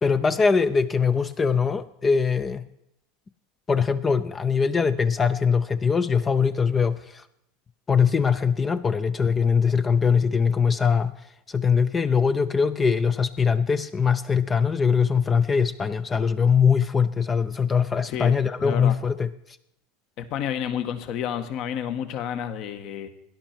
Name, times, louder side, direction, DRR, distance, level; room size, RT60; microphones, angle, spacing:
voice 1, 0.0-2.6 3.7-7.2 7.9-11.1 11.5-19.6, left 6 dB, 20° left, 10 dB, 0.6 m, -22 dB
voice 2, 18.6-18.9 20.2-23.1, left 9 dB, 55° left, 9 dB, 1.5 m, -30 dB
17.0 x 11.0 x 4.5 m, 0.81 s
hypercardioid pair, 105°, 0 cm